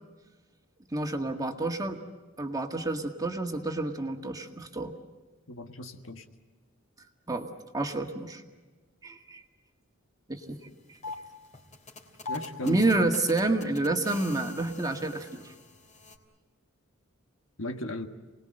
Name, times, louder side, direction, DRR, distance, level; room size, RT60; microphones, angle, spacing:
voice 1, 0.9-2.0 2.4-4.9 7.3-7.5 7.7-8.4 9.0-9.4 10.3-10.6 12.7-15.4, right 2 dB, 20° right, 4 dB, 1.8 m, -29 dB
voice 2, 5.5-6.2 12.3-13.0 17.6-18.1, left 1 dB, 70° left, 6 dB, 1.6 m, -36 dB
sound 1, 10.4-10.5 10.8-16.2, left 3 dB, 35° left, 3.1 m, -43 dB
29.0 x 20.0 x 7.8 m, 1.3 s
head